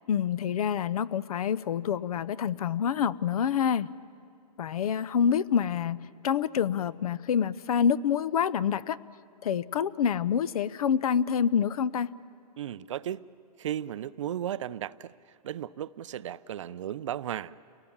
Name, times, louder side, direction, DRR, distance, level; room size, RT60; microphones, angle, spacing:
voice 1, 0.1-3.9 4.6-9.0 9.4-12.1, left 8 dB, 60° left, 20 dB, 0.6 m, -27 dB
voice 2, 12.6-13.2 13.6-15.1 15.4-17.5, right 11 dB, 45° right, 17 dB, 0.5 m, -35 dB
29.0 x 18.5 x 7.2 m, 2.4 s
hypercardioid pair, 160°, 21 cm